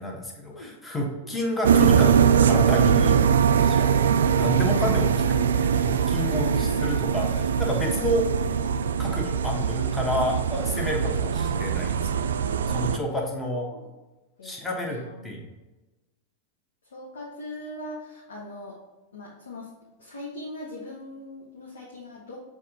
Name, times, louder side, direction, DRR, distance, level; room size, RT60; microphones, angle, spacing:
voice 1, 0.0-8.2 9.0-12.0 12.7-13.7 14.4-15.5, equal, 10° left, -1 dB, 1.3 m, -30 dB
sound 1, 1.6-13.0, right 7 dB, 65° right, 0.3 m, -22 dB
voice 2, 6.2-6.8 8.0-8.3 10.2-10.3 13.5-13.8 14.4-15.3 16.8-18.8 19.1-19.7 20.0-22.4, left 1 dB, 70° left, -4 dB, 1.3 m, -40 dB
7.3 x 3.7 x 4.0 m, 1.1 s
figure-of-eight pair, 90°, 0 cm